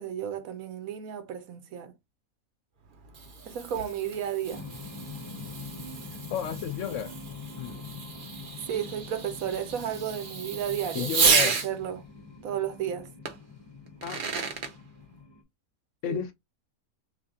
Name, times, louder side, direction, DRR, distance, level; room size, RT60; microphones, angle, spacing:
voice 1, 0.0-1.9 3.5-4.6 8.7-12.0 12.4-13.1 16.1-16.2, right 9 dB, 75° right, 1.2 m, -33 dB
Fireworks, 2.8-11.7 13.2-13.3 13.9-14.7, right 5 dB, 50° right, 0.7 m, -31 dB
sound 1, 4.5-15.4, left 4 dB, 25° left, 0.6 m, -44 dB
voice 2, 6.3-7.1 7.6-7.7 10.9-11.6 14.0-14.2 16.0-16.3, left 9 dB, 70° left, 0.8 m, -32 dB
3.4 x 2.6 x 3.6 m
omnidirectional pair, 1.5 m